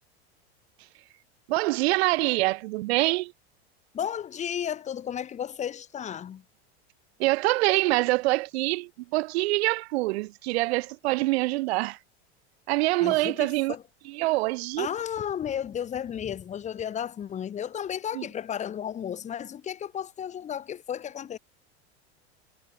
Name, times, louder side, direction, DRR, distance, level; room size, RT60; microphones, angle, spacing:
voice 1, 1.5-3.3 7.2-12.0 12.7-13.7 14.1-14.9 18.1-18.3, right 20 dB, 70° right, 0.8 m, -25 dB
voice 2, 3.9-6.4 13.0-13.8 14.8-21.4, left 9 dB, 20° left, 0.8 m, -33 dB
hypercardioid pair, 110°, 32 cm